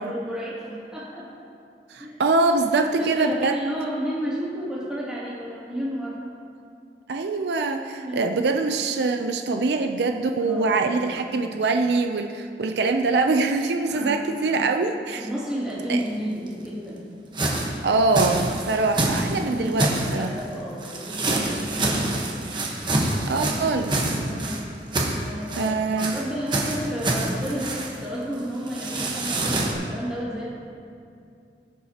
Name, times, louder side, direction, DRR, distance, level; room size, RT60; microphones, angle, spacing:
voice 1, 0.0-1.4 2.0-2.2 2.7-6.3 8.0-8.3 10.4-11.4 13.9-14.8 15.2-17.0 18.5-18.8 19.3-22.3 24.2-24.7 24.9-30.5, equal, 5° right, -9 dB, 2.5 m, -32 dB
voice 2, 1.9-3.5 7.1-15.3 15.9-16.0 17.8-20.3 23.3-24.0 25.6-26.2, right 3 dB, 75° right, 5 dB, 0.5 m, -23 dB
sound 1, 16.0-16.1 16.5-16.6 17.3-20.4 20.8-24.6 24.9-25.7 26.0-26.2 26.5-28.0 28.3-28.4 28.7-29.7, right 2 dB, 25° right, 1.1 m, -26 dB
17.5 x 7.1 x 2.9 m, 2.4 s
head